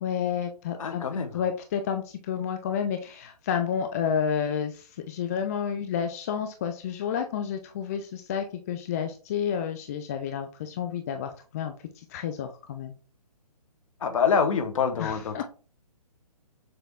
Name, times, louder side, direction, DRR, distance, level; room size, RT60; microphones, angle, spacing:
voice 1, 0.0-1.0 1.3-13.0 15.0-15.4, left 8 dB, 25° left, 6 dB, 0.3 m, -30 dB
voice 2, 0.8-1.3 14.0-15.4, left 6 dB, 55° left, 8 dB, 0.9 m, -25 dB
6.6 x 3.4 x 2.3 m, 0.35 s
hypercardioid pair, 140°, 20 cm